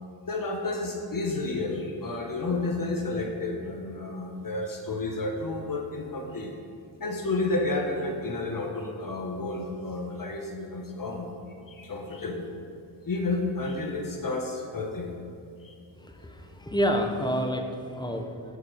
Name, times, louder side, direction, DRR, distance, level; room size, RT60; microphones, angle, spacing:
voice 1, 0.3-6.5 7.0-11.3 11.7-12.5 13.1-15.1 15.6-15.7, left 2 dB, 45° left, 1 dB, 1.0 m, -31 dB
voice 2, 16.0-18.6, equal, 10° left, 3 dB, 0.8 m, -29 dB
6.7 x 4.4 x 5.0 m, 2.4 s
supercardioid pair, 45°, 49 cm